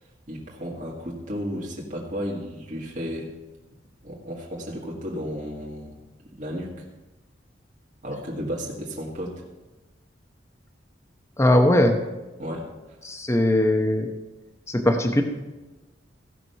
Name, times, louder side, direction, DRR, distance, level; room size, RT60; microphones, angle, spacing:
voice 1, 0.3-3.3 4.0-5.9 6.4-6.9 8.0-9.4 12.4-12.7, equal, 45° right, -4 dB, 2.0 m, -33 dB
voice 2, 11.4-12.0 13.0-14.1 14.7-15.2, left 1 dB, 15° left, 4 dB, 0.8 m, -20 dB
15.5 x 6.1 x 5.5 m, 1.1 s
head